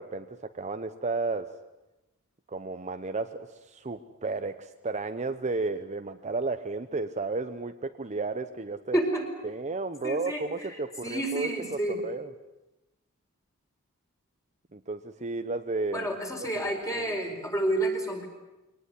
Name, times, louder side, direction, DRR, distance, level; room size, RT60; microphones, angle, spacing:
voice 1, 0.0-1.5 2.5-9.0 9.4-12.3 14.7-17.2, right 3 dB, 30° right, 8 dB, 0.8 m, -33 dB
voice 2, 8.9-9.2 10.0-10.4 11.0-12.0 15.9-18.3, right 1 dB, 15° left, 2 dB, 4.5 m, -29 dB
23.0 x 19.0 x 9.6 m, 1.0 s
head